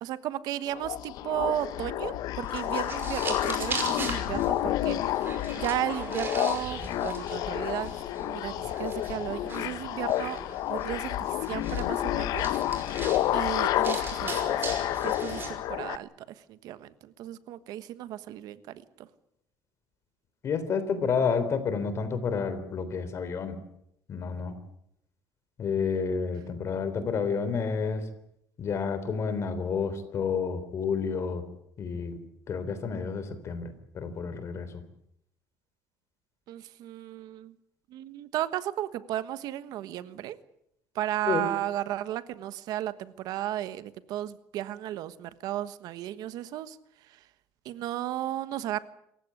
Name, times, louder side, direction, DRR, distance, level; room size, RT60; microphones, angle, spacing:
voice 1, 0.0-10.4 10.7-12.6 13.3-14.7 15.0-16.1 16.5-19.1 27.0-27.5 36.5-37.5 37.9-40.4 40.9-46.8 47.1-47.2 47.6-48.8, right 13 dB, 75° right, 14 dB, 1.3 m, -34 dB
sound 1, 0.7-16.0, left 13 dB, 70° left, 0.9 m, -30 dB
sound 2, 2.4-15.5, right 4 dB, 30° right, 5.5 m, -40 dB
voice 2, 20.4-23.6 24.1-24.5 25.6-28.1 28.6-31.4 31.8-32.2 32.5-34.7 41.3-41.5, left 5 dB, 45° left, 12 dB, 3.6 m, -30 dB
27.0 x 15.5 x 9.8 m, 0.77 s
cardioid pair, 140°, 7 cm